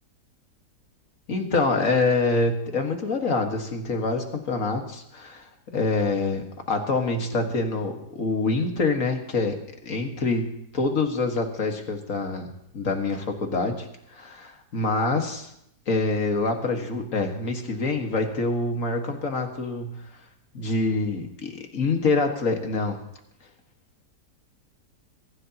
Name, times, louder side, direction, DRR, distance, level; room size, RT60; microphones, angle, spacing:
voice 1, 1.3-9.6 9.8-10.5 10.7-15.5 15.9-20.0 20.5-23.0, left 3 dB, 50° left, 4 dB, 2.0 m, -26 dB
23.5 x 14.5 x 2.9 m, 0.76 s
omnidirectional pair, 1.8 m